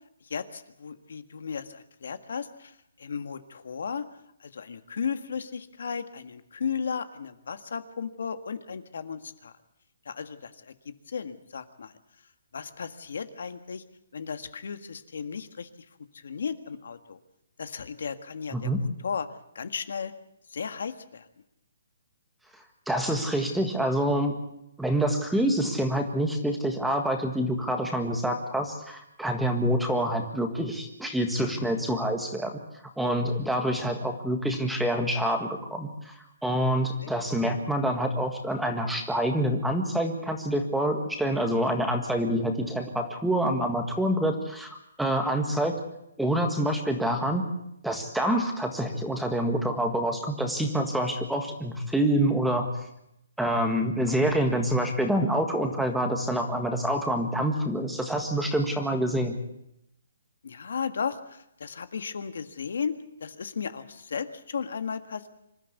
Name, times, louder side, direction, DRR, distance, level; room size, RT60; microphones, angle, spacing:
voice 1, 0.2-4.0 4.4-9.5 10.0-12.0 12.5-13.8 14.1-15.7 16.1-17.2 17.6-19.3 19.5-20.1 20.5-21.3 37.0-37.1 43.4-43.6 54.0-54.2 60.4-62.9 63.2-65.3, left 6 dB, 65° left, 10 dB, 1.6 m, -35 dB
voice 2, 22.9-24.3 24.8-32.5 33.0-36.1 36.4-45.7 46.2-47.4 47.8-52.6 53.4-59.4, right 1 dB, ahead, 4 dB, 1.6 m, -27 dB
26.0 x 13.0 x 8.3 m, 0.80 s
hypercardioid pair, 170°, 0 cm